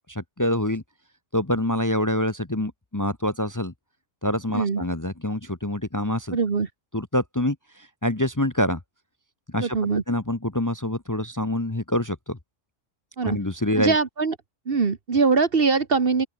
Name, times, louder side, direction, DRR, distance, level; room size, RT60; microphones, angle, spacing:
voice 1, 0.1-0.8 1.3-3.7 4.2-6.4 6.9-8.8 9.5-9.8 10.1-12.4 13.2-14.0, left 1 dB, 15° left, 1.1 m, -26 dB
voice 2, 6.3-6.7 9.6-10.0 13.2-13.4 13.8-14.3 14.7-16.3, right 4 dB, 45° right, 1.5 m, -22 dB
open air
omnidirectional pair, 1.3 m